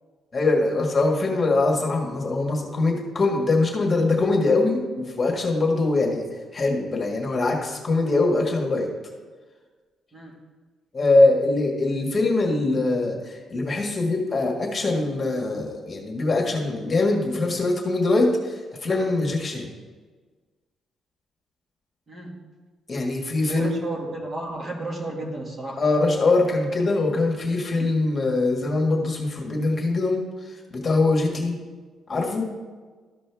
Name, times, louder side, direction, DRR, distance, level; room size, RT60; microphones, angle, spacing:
voice 1, 0.3-6.3 6.5-8.9 10.9-19.7 22.9-23.7 25.8-30.2 30.7-31.6 32.1-32.5, left 2 dB, 30° left, 0 dB, 1.8 m, -22 dB
voice 2, 22.1-22.4 23.4-25.8 31.3-31.4, right 2 dB, 35° right, 0 dB, 1.8 m, -33 dB
13.5 x 5.2 x 3.5 m, 1.4 s
cardioid pair, 90°, 0 cm